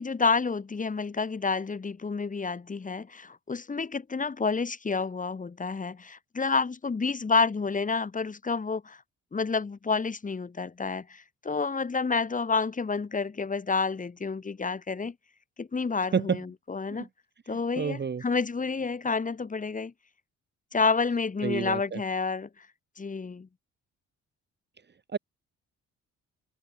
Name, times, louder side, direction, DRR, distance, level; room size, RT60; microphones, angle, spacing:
voice 1, 0.0-9.0 9.3-15.1 15.6-17.1 17.5-19.9 20.7-22.5 23.0-23.5, left 4 dB, 25° left, 2.0 m, -29 dB
voice 2, 17.5-18.2 21.4-22.0 25.1-25.2, right 6 dB, 35° right, 2.0 m, -29 dB
cardioid pair, 90°, 30 cm